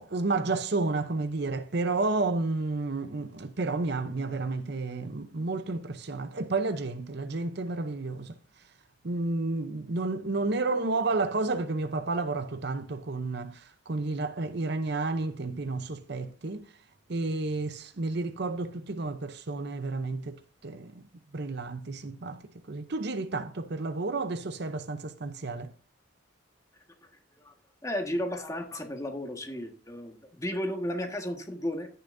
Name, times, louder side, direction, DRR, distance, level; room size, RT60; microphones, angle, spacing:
voice 1, 0.0-8.3 9.0-16.6 17.1-20.9 21.3-22.4 22.7-25.7, right 3 dB, 55° right, 0.7 m, -31 dB
voice 2, 27.8-31.9, left 1 dB, 15° left, 1.6 m, -33 dB
16.0 x 6.9 x 2.6 m
head